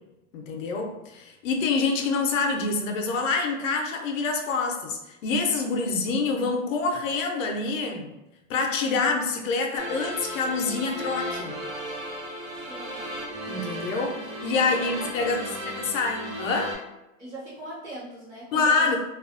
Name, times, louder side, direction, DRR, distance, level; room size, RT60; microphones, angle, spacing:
voice 1, 0.3-8.1 8.5-11.6 13.5-16.7 18.5-19.0, left 4 dB, 70° left, 3 dB, 0.6 m, -26 dB
sound 1, 9.8-16.8, equal, 75° right, 0.9 m, -35 dB
voice 2, 12.5-13.1 14.7-15.9 17.2-18.9, right 1 dB, 20° right, -8 dB, 0.6 m, -41 dB
2.4 x 2.1 x 2.4 m, 0.95 s
supercardioid pair, 155°, 41 cm